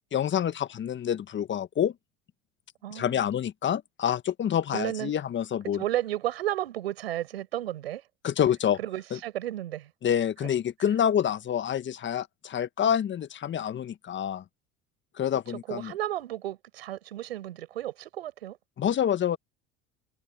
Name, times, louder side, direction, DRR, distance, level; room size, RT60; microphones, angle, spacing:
voice 1, 0.1-1.9 2.9-5.8 8.2-8.8 10.0-14.4 15.2-15.9 18.8-19.4, left 9 dB, 40° left, 1.5 m, -27 dB
voice 2, 2.8-3.2 4.7-5.1 5.7-8.0 8.8-9.9 10.4-10.5 15.5-18.6, right 13 dB, 85° right, 7.9 m, -33 dB
hypercardioid pair, 70°, 30 cm